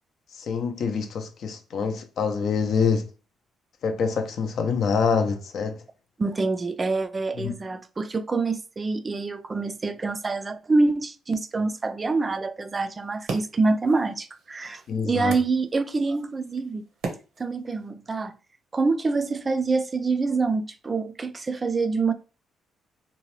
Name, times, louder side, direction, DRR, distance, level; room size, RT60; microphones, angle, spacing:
voice 1, 0.3-3.1 3.8-5.8 7.4-7.5 14.9-15.3, left 5 dB, 65° left, 0.5 m, -25 dB
voice 2, 6.2-16.8 17.4-18.3 18.7-22.1, right 3 dB, 30° right, 0.3 m, -26 dB
sound 1, 12.9-17.9, right 4 dB, 80° right, 0.7 m, -40 dB
2.7 x 2.2 x 3.0 m
cardioid pair, 90°, 0 cm